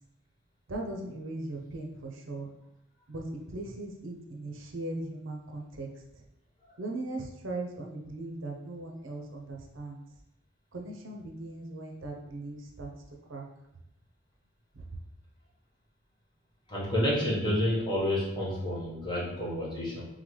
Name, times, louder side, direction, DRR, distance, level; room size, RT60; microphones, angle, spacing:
voice 1, 0.7-2.5 3.1-5.9 6.8-10.0 10.7-12.9 13.3-13.4 14.8-14.9, right 2 dB, 70° right, 1 dB, 0.7 m, -38 dB
voice 2, 16.7-20.1, left 1 dB, 25° left, -6 dB, 1.2 m, -29 dB
3.8 x 3.7 x 3.2 m, 0.87 s
head